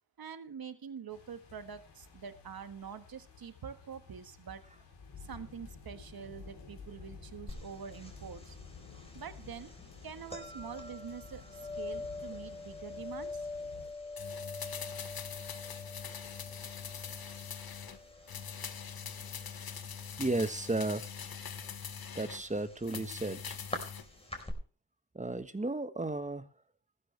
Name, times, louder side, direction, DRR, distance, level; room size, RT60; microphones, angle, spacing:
voice 1, 0.2-4.6 5.2-8.6 9.1-9.7 10.0-13.5, right 7 dB, 60° right, 1.6 m, -45 dB
sound 1, 1.1-13.9, left 5 dB, 85° left, 4.0 m, -52 dB
sound 2, 7.5-24.5, left 2 dB, 15° left, 4.5 m, -46 dB
sound 3, 14.2-18.0 18.3-22.4 22.8-24.1 24.4-24.5, left 7 dB, 60° left, 1.4 m, -43 dB
voice 2, 20.2-21.1 22.1-23.6 25.1-26.5, right 2 dB, 20° right, 1.4 m, -34 dB
15.0 x 12.5 x 3.4 m
cardioid pair, 55°, 41 cm